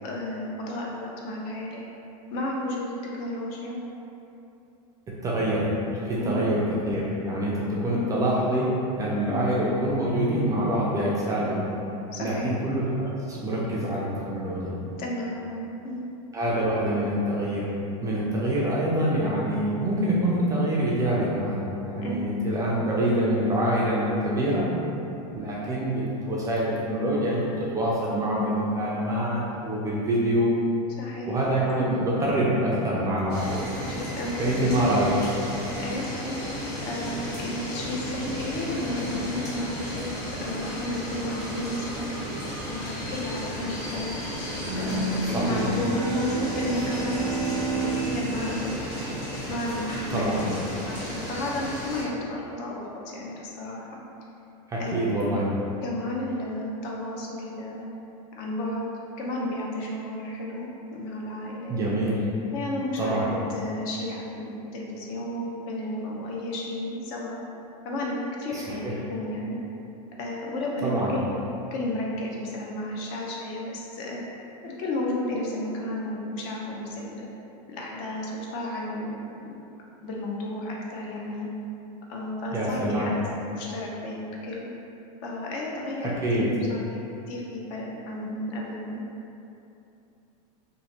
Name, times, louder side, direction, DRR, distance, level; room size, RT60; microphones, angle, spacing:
voice 1, 0.0-1.8 2.3-3.8 6.2-6.4 9.3-9.4 12.1-12.5 15.0-16.0 22.0-22.2 31.0-31.4 33.9-34.7 35.6-36.4 36.8-40.1 40.4-42.1 42.7-44.2 44.8-47.4 47.7-49.0 49.5-53.9 54.7-55.1 55.8-57.9 58.4-58.9 59.2-61.8 62.5-67.4 67.8-69.6 70.2-71.3 71.7-74.2 74.6-77.3 77.7-79.5 80.0-81.5 82.1-83.2 83.5-84.7 85.2-87.0 87.3-89.0, left 1 dB, 50° left, -3 dB, 0.6 m, -33 dB
voice 2, 5.1-5.7 6.0-11.6 12.2-14.7 16.3-17.7 18.0-24.7 25.3-30.5 31.3-33.7 34.4-35.2 45.2-45.7 50.1-50.5 54.7-55.5 61.7-62.2 63.0-63.3 68.5-68.9 70.8-71.1 82.5-83.1 86.2-86.5, right 1 dB, 15° right, -5 dB, 0.4 m, -25 dB
sound 1, 33.3-52.0, equal, 80° left, 1.3 m, -34 dB
Bowed string instrument, 44.6-49.7, right 3 dB, 85° right, 0.5 m, -31 dB
3.0 x 2.1 x 2.8 m, 2.8 s
supercardioid pair, 130°, 20 cm